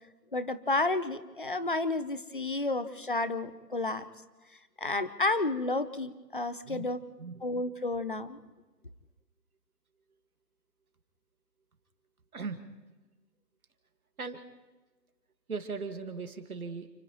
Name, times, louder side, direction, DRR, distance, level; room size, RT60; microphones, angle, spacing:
voice 1, 0.3-4.0 4.8-7.0 7.4-8.4, left 2 dB, 30° left, 13 dB, 0.7 m, -31 dB
voice 2, 6.7-7.4 12.3-12.6 14.2-14.4 15.5-16.9, right 4 dB, 55° right, 7 dB, 2.0 m, -38 dB
30.0 x 29.5 x 3.1 m, 1.2 s
figure-of-eight pair, 160°, 50 cm